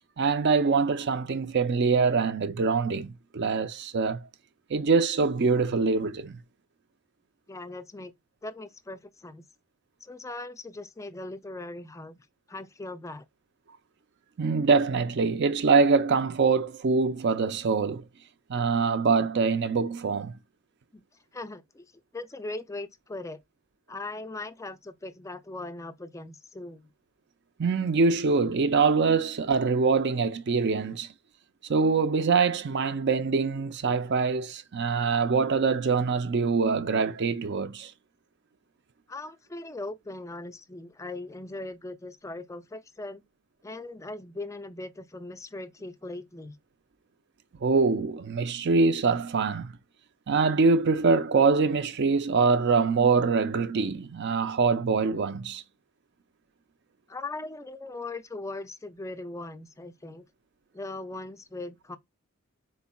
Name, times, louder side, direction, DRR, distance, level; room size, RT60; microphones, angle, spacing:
voice 1, 0.2-4.3 4.7-6.4 14.4-18.0 18.5-20.3 27.6-31.1 31.7-37.9 47.6-49.7 50.3-55.6, right 4 dB, 55° right, 0.5 m, -24 dB
voice 2, 7.5-8.1 8.4-9.4 10.0-13.3 20.9-21.0 21.3-21.9 22.1-23.4 23.9-26.9 39.1-43.2 43.6-46.6 57.1-60.2 60.7-62.0, left 2 dB, 15° left, 0.4 m, -39 dB
4.3 x 4.1 x 2.3 m
head